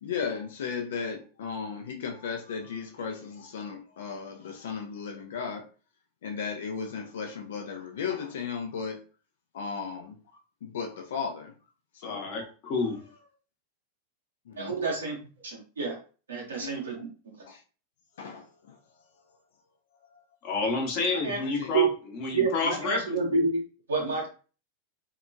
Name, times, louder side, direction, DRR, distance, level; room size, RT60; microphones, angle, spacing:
voice 1, 0.0-5.7 6.2-9.0 9.5-10.2 10.6-11.5 11.9-12.3 14.5-14.8 16.5-17.1 17.5-17.6 18.2-18.8 20.1-20.2 21.4-21.7 24.0-24.1, left 6 dB, 70° left, 3 dB, 0.6 m, -36 dB
voice 2, 12.0-13.1 20.4-21.9 22.1-23.5, left 4 dB, 50° left, 1 dB, 0.9 m, -30 dB
voice 3, 14.6-15.2 15.4-16.0 16.3-17.0 21.1-21.4 21.7-21.9 22.3-24.3, right 4 dB, 85° right, -2 dB, 0.9 m, -28 dB
2.8 x 2.2 x 2.6 m, 0.37 s
hypercardioid pair, 95°, 0 cm